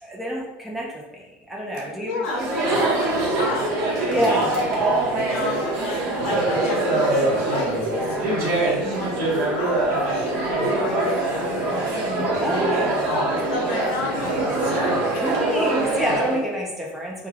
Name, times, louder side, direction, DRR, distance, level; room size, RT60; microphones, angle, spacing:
voice 1, 0.0-3.4 4.1-5.3 8.8-9.5 12.4-13.2 15.2-17.3, equal, 5° right, -3 dB, 0.5 m, -28 dB
voice 2, 1.8-4.0 5.1-12.2 12.8-15.6 16.3-16.4, left 3 dB, 85° left, 0 dB, 0.7 m, -32 dB
Chatter, 2.2-16.4, right 2 dB, 45° right, 0.9 m, -23 dB
2.2 x 2.2 x 3.2 m, 0.98 s
cardioid pair, 145°, 6 cm